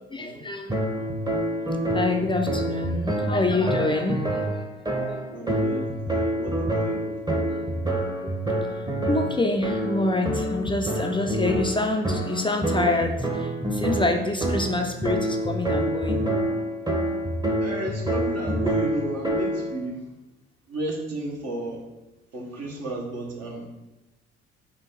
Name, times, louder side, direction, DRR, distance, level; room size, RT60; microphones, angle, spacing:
voice 1, 0.1-0.8 1.9-4.6 5.1-5.3 8.2-8.3 8.7-16.3, left 2 dB, 15° left, 3 dB, 0.5 m, -27 dB
sound 1, 0.7-19.8, right 1 dB, 15° right, 0.9 m, -27 dB
voice 2, 5.3-7.1 17.6-20.1 20.7-21.8 22.3-23.7, right 1 dB, 55° right, -2 dB, 1.3 m, -33 dB
5.2 x 2.5 x 3.9 m, 1.0 s
hypercardioid pair, 55°, 31 cm